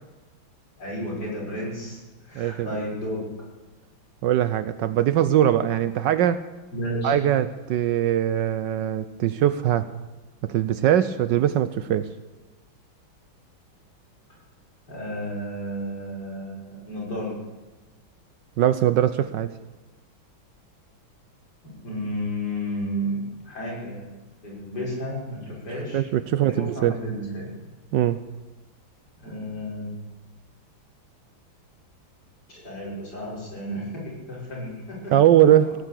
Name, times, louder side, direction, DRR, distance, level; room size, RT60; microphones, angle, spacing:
voice 1, 0.8-3.2 6.7-7.2 14.9-17.4 21.6-24.1 24.4-26.0 26.3-27.5 29.2-29.9 32.5-35.2 35.6-35.7, equal, 50° left, -4 dB, 6.6 m, -32 dB
voice 2, 2.4-2.7 4.2-6.4 7.0-9.9 10.4-12.1 18.6-19.5 25.9-26.9 27.9-28.2 35.1-35.7, right 11 dB, 70° right, 14 dB, 1.2 m, -21 dB
17.5 x 9.9 x 8.3 m, 1.2 s
omnidirectional pair, 2.2 m